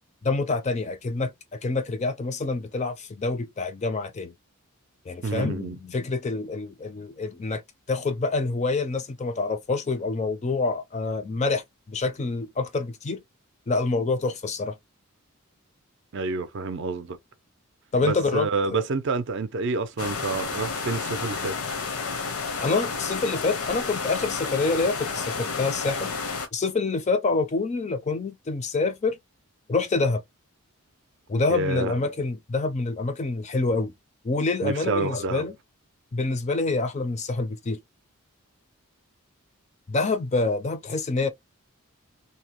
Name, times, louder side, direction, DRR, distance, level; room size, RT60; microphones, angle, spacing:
voice 1, 0.2-4.3 5.1-7.6 7.9-13.2 13.7-14.7 17.9-18.8 22.6-26.1 26.5-29.2 29.7-30.2 31.3-33.9 34.2-35.5 36.1-37.8 39.9-41.3, left 3 dB, 30° left, 0.4 m, -27 dB
voice 2, 5.2-5.8 16.1-17.2 18.0-21.6 31.5-32.0 34.6-35.5, right 3 dB, 55° right, 0.4 m, -28 dB
sound 1, 20.0-26.5, left 4 dB, 80° left, 0.7 m, -31 dB
2.7 x 2.0 x 2.9 m
head